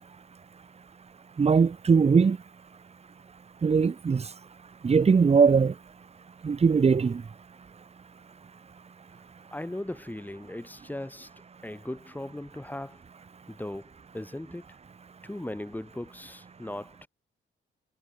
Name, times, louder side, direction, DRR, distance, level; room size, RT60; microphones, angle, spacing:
voice 1, 1.4-2.4 3.6-4.2 4.8-5.7 6.4-7.2, right 5 dB, 30° right, 1.4 m, -20 dB
voice 2, 9.5-11.3 11.6-13.0 13.5-14.6 15.2-17.1, left 1 dB, 10° left, 7.8 m, -38 dB
cardioid pair, 90°, 20 cm